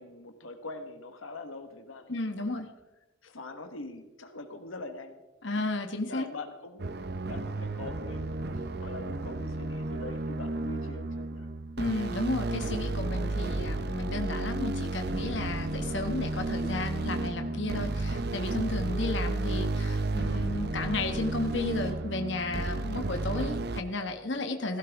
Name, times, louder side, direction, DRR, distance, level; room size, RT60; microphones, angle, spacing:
voice 1, 0.0-2.1 2.4-2.5 3.2-5.7 6.1-6.9 7.3-11.5, left 2 dB, 90° left, 6 dB, 1.4 m, -43 dB
voice 2, 2.1-2.7 5.4-6.3 11.8-24.8, left 2 dB, 65° left, 5 dB, 1.4 m, -33 dB
sound 1, 6.8-23.8, right 2 dB, 55° right, 0.6 m, -32 dB
16.5 x 15.5 x 3.5 m, 1.0 s
head